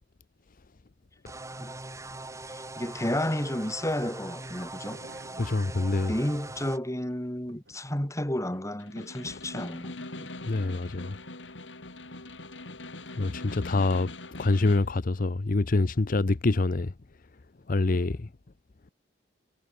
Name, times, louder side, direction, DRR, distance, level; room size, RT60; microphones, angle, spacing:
sound 1, 1.3-6.8, right 2 dB, 15° right, 2.1 m, -41 dB
voice 1, 2.5-5.0 5.3-5.4 6.1-10.3, left 1 dB, 15° left, 3.3 m, -32 dB
sound 2, 4.4-6.2 7.2-8.1 8.5-8.9 9.2-9.3 9.7-9.8, right 2 dB, 80° right, 8.0 m, -54 dB
voice 2, 5.4-6.1 10.5-11.2 13.2-14.1 14.4-16.9 17.7-18.3, left 2 dB, 50° left, 0.7 m, -26 dB
Snare drum, 8.8-14.9, left 2 dB, 85° left, 5.4 m, -42 dB
head